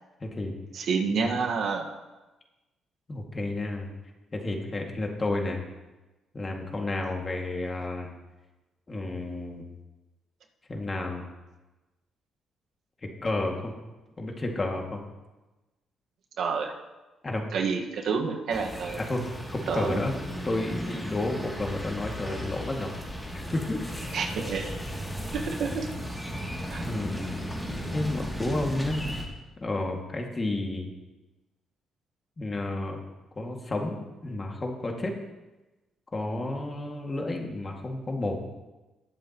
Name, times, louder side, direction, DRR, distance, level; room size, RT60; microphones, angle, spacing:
voice 1, 0.2-0.5 1.2-1.3 3.1-3.9 4.3-5.6 6.3-8.1 8.9-9.6 10.7-11.3 13.2-13.7 14.2-15.0 17.2-17.4 19.0-20.1 20.4-22.9 23.3-23.8 26.8-27.4 27.9-29.0 29.6-30.9 32.4-33.0 33.4-34.0 34.2-35.1 36.1-38.5, left 2 dB, 30° left, 1 dB, 2.1 m, -31 dB
voice 2, 0.7-1.9 16.4-16.7 17.5-19.0 19.7-20.0 24.1-24.7 25.3-25.9 26.7-26.8, right 5 dB, 70° right, 2 dB, 1.5 m, -29 dB
sound 1, 18.5-29.2, equal, 5° left, 2.6 m, -36 dB
20.5 x 7.1 x 3.0 m, 1.1 s
cardioid pair, 90°, 0 cm